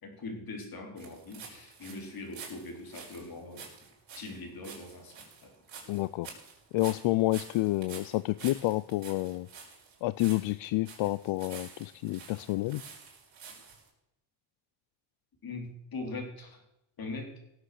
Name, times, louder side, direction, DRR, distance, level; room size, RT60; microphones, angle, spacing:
voice 1, 0.0-3.7 4.1-5.5 15.4-16.6 17.0-17.3, left 3 dB, 50° left, 4 dB, 3.5 m, -41 dB
sound 1, 1.0-13.9, right 5 dB, 65° right, 5.2 m, -49 dB
voice 2, 5.9-6.3 6.7-9.5 10.0-12.8, left 19 dB, 80° left, 17 dB, 0.5 m, -29 dB
17.5 x 7.7 x 6.6 m, 0.85 s
cardioid pair, 115°, 46 cm